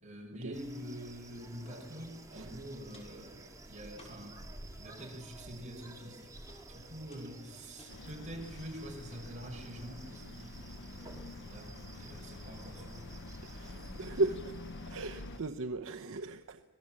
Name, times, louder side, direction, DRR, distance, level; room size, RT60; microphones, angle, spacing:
voice 1, 0.0-3.4 3.7-4.4 4.8-6.2 6.7-10.6 11.0-13.0 13.7-14.2, equal, 35° right, 1 dB, 5.7 m, -46 dB
sound 1, 0.5-15.6, right 2 dB, 15° right, 2.6 m, -53 dB
Walk footsteps, 2.0-2.1 2.4-3.3 3.9-4.4 4.8-5.1 5.8-6.1 6.5-6.6 7.1-7.9 8.4-8.7 9.1-9.2 9.8-9.9, left 1 dB, 30° left, 6.3 m, -59 dB
sound 2, 7.9-15.4, left 2 dB, 55° left, 0.9 m, -47 dB
voice 2, 13.4-14.6 14.9-16.6, right 2 dB, 65° right, 6 dB, 0.9 m, -36 dB
25.5 x 18.5 x 7.6 m, 1.3 s
head